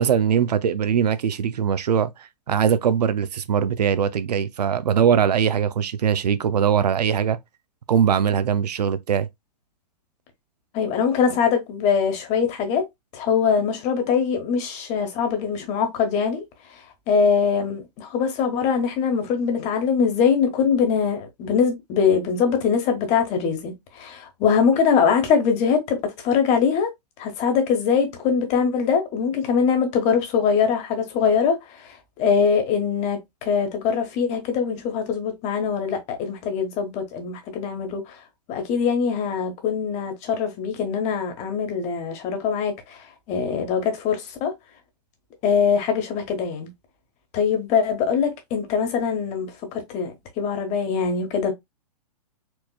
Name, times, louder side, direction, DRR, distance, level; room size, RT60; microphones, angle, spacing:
voice 1, 0.0-7.4 7.9-9.3, right 8 dB, 80° right, 0.5 m, -21 dB
voice 2, 10.7-12.8 13.1-16.4 17.1-26.9 27.2-38.2 38.5-44.5 45.4-46.7 47.3-51.5, left 6 dB, 35° left, 1.2 m, -22 dB
4.5 x 2.8 x 2.2 m
hypercardioid pair, 120°, 21 cm